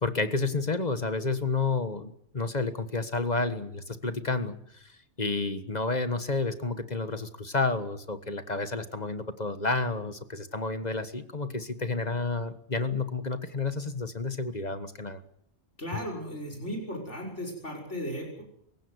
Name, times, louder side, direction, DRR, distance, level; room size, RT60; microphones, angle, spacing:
voice 1, 0.0-15.2, left 3 dB, 40° left, 11 dB, 1.6 m, -30 dB
voice 2, 15.8-18.4, equal, 90° left, 0 dB, 6.2 m, -36 dB
27.0 x 16.0 x 8.1 m, 0.69 s
omnidirectional pair, 1.2 m